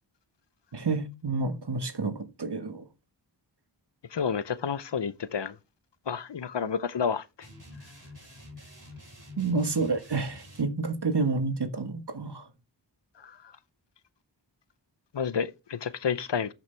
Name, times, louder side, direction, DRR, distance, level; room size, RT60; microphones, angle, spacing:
voice 1, 0.7-2.9 9.4-12.5, right 3 dB, 60° right, 1.5 m, -29 dB
voice 2, 4.1-5.5 6.1-7.2 13.2-13.3 15.1-16.5, left 6 dB, 65° left, 0.7 m, -30 dB
sound 1, 7.4-10.7, left 1 dB, 40° right, 4.4 m, -47 dB
13.5 x 6.0 x 3.3 m
wide cardioid pair, 45°, 46 cm